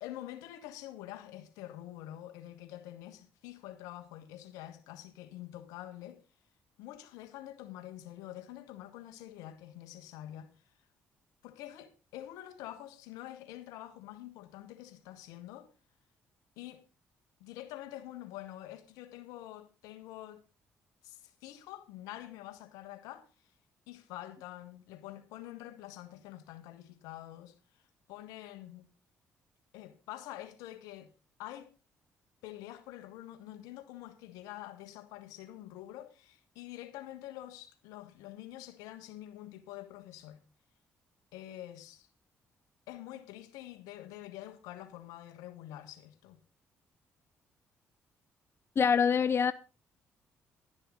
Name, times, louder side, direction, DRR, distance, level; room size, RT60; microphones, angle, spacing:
voice 1, 0.0-6.2 6.8-10.5 11.4-15.7 16.6-16.8 17.4-20.4 21.0-23.5 23.9-27.8 28.1-28.9 29.7-31.1 31.4-31.7 32.4-40.4 41.3-42.1 42.9-46.4, left 14 dB, 85° left, 1.4 m, -46 dB
voice 2, 48.8-49.5, left 6 dB, 45° left, 0.5 m, -25 dB
12.0 x 10.5 x 3.8 m
supercardioid pair, 55°, 6 cm